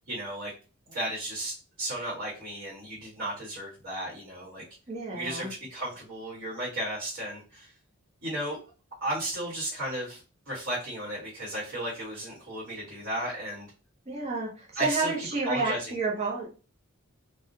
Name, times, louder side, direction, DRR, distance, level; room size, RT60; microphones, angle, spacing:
voice 1, 0.1-0.5 0.9-4.6 5.1-7.7 8.2-8.6 9.0-13.7 14.7-15.9, right 1 dB, 50° right, -8 dB, 1.5 m, -34 dB
voice 2, 4.9-5.5 14.1-16.5, right 3 dB, 30° right, -2 dB, 0.8 m, -30 dB
3.5 x 2.4 x 2.7 m, 0.34 s
head